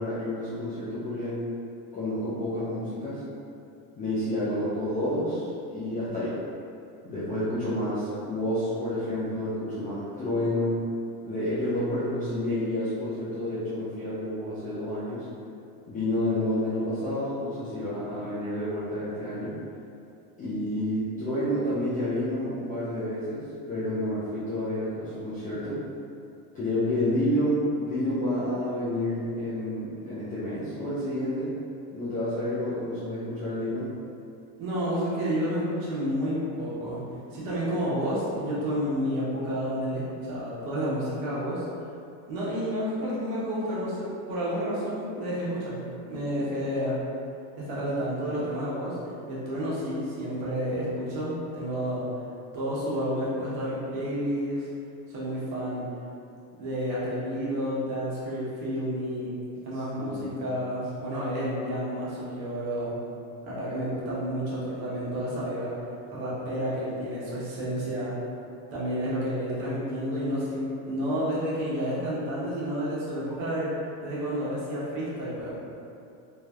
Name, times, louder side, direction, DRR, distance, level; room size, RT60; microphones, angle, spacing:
voice 1, 0.0-1.4 1.9-3.2 4.0-6.4 7.0-10.8 11.2-15.3 15.9-19.5 20.4-25.8 26.5-31.5 31.9-33.9 59.7-60.3, left 1 dB, 20° left, -13 dB, 0.3 m, -29 dB
voice 2, 34.6-37.0 37.3-41.6 42.3-47.0 47.6-49.0 49.2-52.1 52.5-54.7 55.1-55.9 56.6-59.4 59.6-63.0 63.4-65.8 66.1-68.1 68.7-73.7 74.0-75.5, equal, 50° right, -8 dB, 1.1 m, -30 dB
3.3 x 2.6 x 2.3 m, 2.6 s
supercardioid pair, 145°, 46 cm